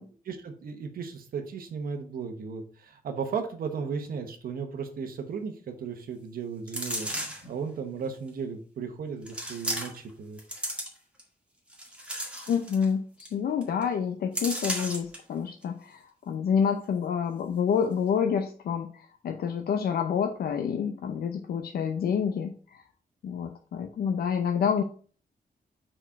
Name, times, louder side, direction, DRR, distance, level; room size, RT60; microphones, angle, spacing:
voice 1, 0.3-10.4, right 6 dB, 75° right, 5 dB, 1.1 m, -35 dB
sound 1, 6.7-7.5 8.3-8.4 9.3-10.1 10.4-11.2 11.7-12.9 13.2-13.3 13.6-13.8 14.3-15.2 15.6-15.7, right 1 dB, 5° right, 1.8 m, -34 dB
voice 2, 12.5-22.8 23.2-24.8, left 7 dB, 90° left, 4 dB, 0.6 m, -28 dB
4.6 x 4.4 x 5.8 m, 0.42 s
wide cardioid pair, 155°, 15 cm